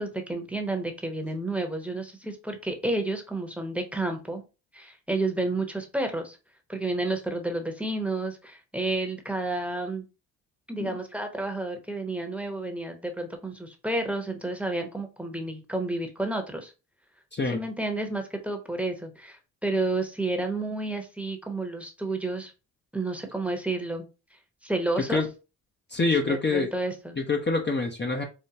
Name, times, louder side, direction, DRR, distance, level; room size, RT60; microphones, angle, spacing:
voice 1, 0.0-4.4 4.7-6.4 6.7-10.0 10.7-16.7 17.5-22.5 22.9-24.0 24.6-25.2 26.3-27.2, right 2 dB, 5° right, 5 dB, 1.0 m, -30 dB
voice 2, 17.3-17.6 25.1-25.3 25.9-26.7 27.2-28.2, left 3 dB, 30° left, 2 dB, 0.8 m, -26 dB
4.9 x 2.1 x 2.9 m, 0.30 s
supercardioid pair, 60°, 38 cm